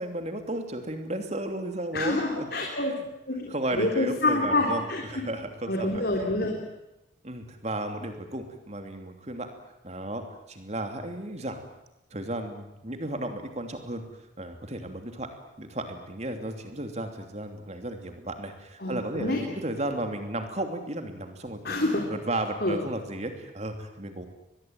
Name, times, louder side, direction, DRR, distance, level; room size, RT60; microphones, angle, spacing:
voice 1, 0.0-2.5 2.9-3.1 3.5-6.0 7.2-9.5 9.8-11.6 12.1-14.0 14.4-15.3 15.6-21.6 22.1-24.3, right 1 dB, 35° right, 6 dB, 3.1 m, -34 dB
voice 2, 1.9-2.9 3.3-5.2 5.7-6.6 18.8-19.4 21.6-22.0 22.6-22.8, left 2 dB, 50° left, 0 dB, 3.7 m, -27 dB
24.0 x 20.0 x 9.1 m, 0.89 s
head